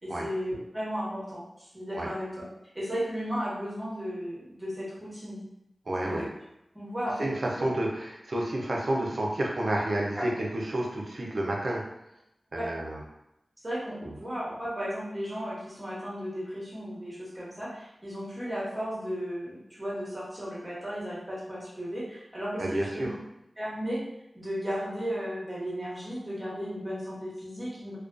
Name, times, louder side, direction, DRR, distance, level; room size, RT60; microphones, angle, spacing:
voice 1, 0.0-2.5 2.7-5.4 6.0-6.3 6.7-7.7 10.1-10.2 12.5-12.7 13.6-23.1 23.6-24.0 24.3-28.0, equal, 25° right, -7 dB, 1.1 m, -35 dB
voice 2, 5.9-6.2 7.2-7.3 7.6-11.8 12.5-13.0 14.0-14.2 22.6-23.2, right 1 dB, 60° right, -2 dB, 0.5 m, -30 dB
2.3 x 2.2 x 2.4 m, 0.84 s
wide cardioid pair, 55°, 0 cm